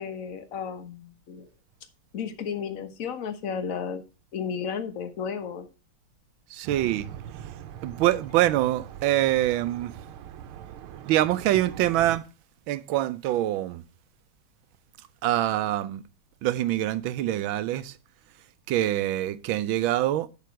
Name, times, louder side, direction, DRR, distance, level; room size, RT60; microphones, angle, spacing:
voice 1, 0.0-1.5 2.1-4.0 4.3-5.7, left 7 dB, 45° left, 1.4 m, -33 dB
voice 2, 6.5-7.1 7.8-9.9 11.1-12.2 12.7-13.8 15.2-16.0 16.4-17.9 18.7-20.3, right 14 dB, 75° right, 1.4 m, -25 dB
sound 1, 6.6-12.2, right 9 dB, 90° right, 1.6 m, -42 dB
8.4 x 6.8 x 4.5 m
omnidirectional pair, 2.3 m